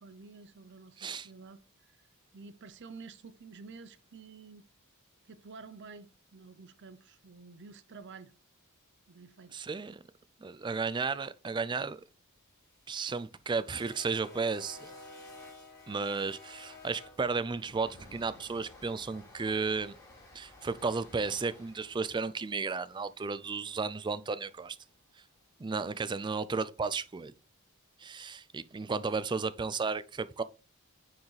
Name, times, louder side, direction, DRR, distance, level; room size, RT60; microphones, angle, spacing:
voice 1, 0.0-2.1 2.3-4.7 5.2-8.3 9.1-9.6, right 4 dB, 50° right, 0.7 m, -50 dB
voice 2, 9.5-10.0 10.4-12.0 12.9-14.9 15.9-20.0 20.3-24.8 25.6-27.3 28.0-30.4, right 4 dB, 20° right, 0.3 m, -34 dB
sound 1, 12.4-24.6, left 2 dB, 15° left, 3.3 m, -53 dB
9.2 x 4.8 x 3.2 m
head